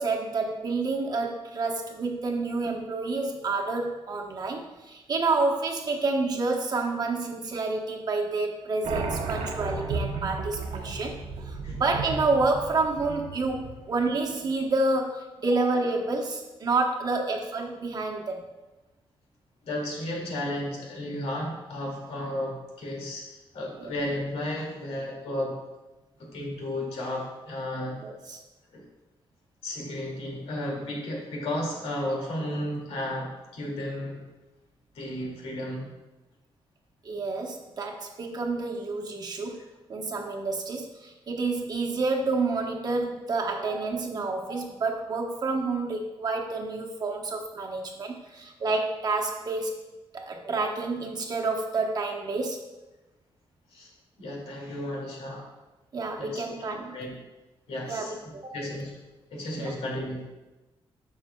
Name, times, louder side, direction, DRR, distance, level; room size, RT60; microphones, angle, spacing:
voice 1, 0.0-18.4 23.8-23.9 28.0-28.4 37.0-49.7 50.1-52.6 55.9-57.0 57.9-58.1 58.3-58.5 59.6-59.7, right 3 dB, 40° right, 1 dB, 1.0 m, -29 dB
sound 1, 8.8-14.1, right 4 dB, 80° right, 0.8 m, -34 dB
voice 2, 19.6-25.6 26.2-28.0 28.7-28.8 29.6-34.3 34.9-35.9 53.7-53.9 54.2-55.5 56.2-56.4 56.9-57.1 57.7-58.1 58.5-58.9 59.3-60.2, left 1 dB, 85° left, -2 dB, 2.3 m, -33 dB
10.5 x 6.7 x 2.3 m, 1.1 s
wide cardioid pair, 155°, 10 cm